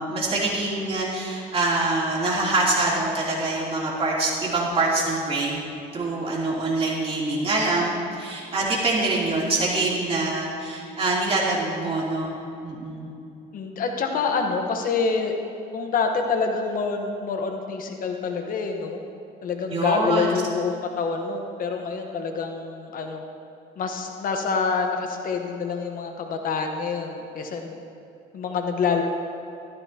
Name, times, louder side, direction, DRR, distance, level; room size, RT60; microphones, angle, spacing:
voice 1, 0.0-5.6 5.9-12.3 12.6-13.1 19.7-20.3, right 2 dB, 35° right, -5 dB, 3.1 m, -25 dB
voice 2, 13.5-15.3 15.7-19.0 19.4-23.2 23.8-27.8 28.3-29.0, left 5 dB, 55° left, 4 dB, 1.1 m, -26 dB
13.5 x 12.5 x 2.9 m, 2.6 s
cardioid pair, 110°, 17 cm